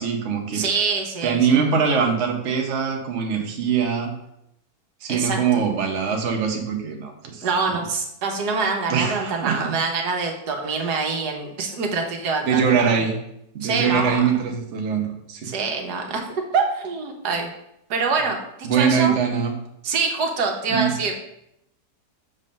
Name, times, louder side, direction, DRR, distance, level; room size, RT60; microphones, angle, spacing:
voice 1, 0.0-0.6 1.2-4.1 5.0-7.8 8.9-9.7 10.7-10.9 12.4-13.1 13.5-15.5 18.6-19.5 20.7-20.9, right 6 dB, 55° right, 2 dB, 1.1 m, -22 dB
voice 2, 0.5-1.6 5.1-5.4 7.4-12.9 13.6-14.3 15.4-17.5 17.9-19.2 19.8-21.1, right 4 dB, 80° right, 2 dB, 1.5 m, -25 dB
6.6 x 3.2 x 5.2 m, 0.79 s
omnidirectional pair, 1.7 m